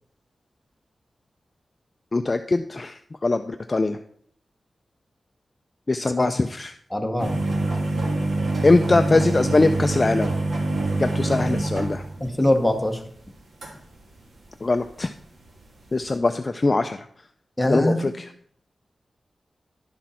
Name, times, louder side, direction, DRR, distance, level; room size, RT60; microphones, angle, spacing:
voice 1, 2.1-4.0 5.9-6.7 8.6-10.3 11.0-12.0 14.6-15.1 15.9-17.1 17.7-18.3, left 3 dB, 30° left, 7 dB, 0.3 m, -22 dB
voice 2, 6.9-7.4 12.2-13.0 17.6-18.1, left 1 dB, 5° left, 2 dB, 1.0 m, -22 dB
sound 1, 7.2-13.0 13.6-15.2 15.4-15.6 15.9-16.1, right 2 dB, 65° right, 1.6 m, -25 dB
11.0 x 6.2 x 4.3 m, 0.64 s
wide cardioid pair, 175°, 0 cm